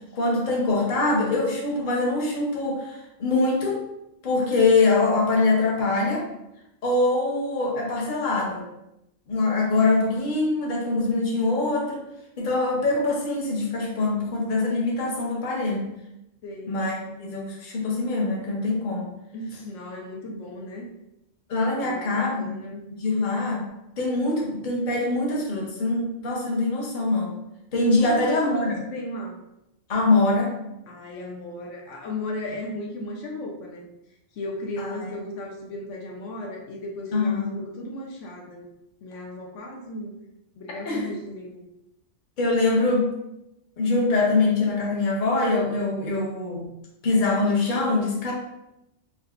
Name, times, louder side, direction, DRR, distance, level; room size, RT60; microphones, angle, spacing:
voice 1, 0.1-3.8 4.2-6.3 6.8-8.6 9.3-12.0 12.4-15.9 16.7-19.1 21.5-22.5 22.9-23.7 24.0-27.3 27.7-28.8 29.9-30.6 34.8-35.1 37.1-37.4 40.9-41.1 42.4-43.1 43.8-46.6 47.0-48.3, left 2 dB, 45° left, -2 dB, 0.8 m, -23 dB
voice 2, 16.4-16.8 19.3-20.9 21.8-22.9 28.0-29.4 30.9-33.9 34.3-38.7 39.0-40.2 40.6-41.6, left 2 dB, 80° left, 0 dB, 0.9 m, -35 dB
5.0 x 2.1 x 2.4 m, 0.88 s
omnidirectional pair, 1.3 m